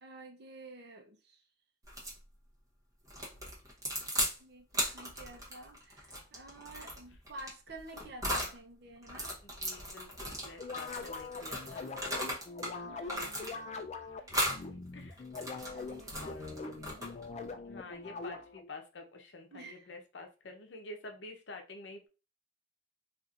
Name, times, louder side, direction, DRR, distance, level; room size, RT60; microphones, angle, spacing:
voice 1, 0.0-1.4 4.4-9.4 12.8-13.5 15.7-16.4 16.8-17.1 17.7-17.9 19.5-19.9, right 2 dB, 55° right, 0.7 m, -50 dB
sound 1, 1.9-2.2 3.1-4.4 4.7-8.6 9.0-12.7 13.0-13.8 14.3-14.6 15.2-17.3, equal, 15° right, 0.9 m, -37 dB
voice 2, 9.4-11.9 14.1-14.3 14.7-15.2 16.2-17.2 17.6-22.1, left 2 dB, 65° left, 0.7 m, -49 dB
sound 2, 10.6-18.7, left 3 dB, 35° left, 0.3 m, -43 dB
4.2 x 2.5 x 2.4 m
head